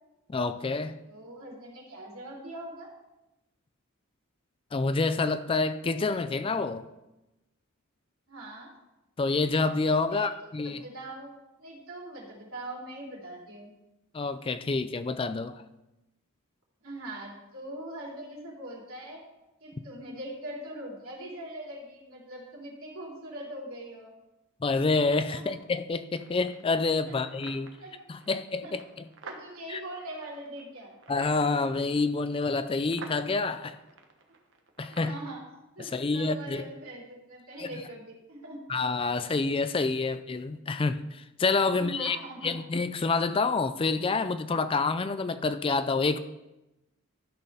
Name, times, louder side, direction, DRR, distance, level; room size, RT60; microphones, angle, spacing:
voice 1, 0.3-1.0 4.7-6.9 9.2-10.8 14.1-15.6 24.6-27.7 28.1-28.8 29.7-29.8 31.1-33.8 34.8-35.1 35.8-36.6 37.6-37.7 38.7-42.2 42.4-46.2, left 3 dB, 25° left, 12 dB, 0.4 m, -28 dB
voice 2, 1.1-2.9 8.3-8.7 10.0-10.3 10.6-11.3 11.6-13.7 16.8-19.2 19.6-24.1 25.3-25.5 27.1-27.2 27.8-28.0 28.6-28.8 29.2-31.0 34.9-35.4 35.8-38.6 41.7-42.6, right 1 dB, 80° right, -3 dB, 3.0 m, -42 dB
sound 1, 26.1-35.2, right 3 dB, 60° right, 1.2 m, -51 dB
13.0 x 4.4 x 5.5 m, 0.95 s
head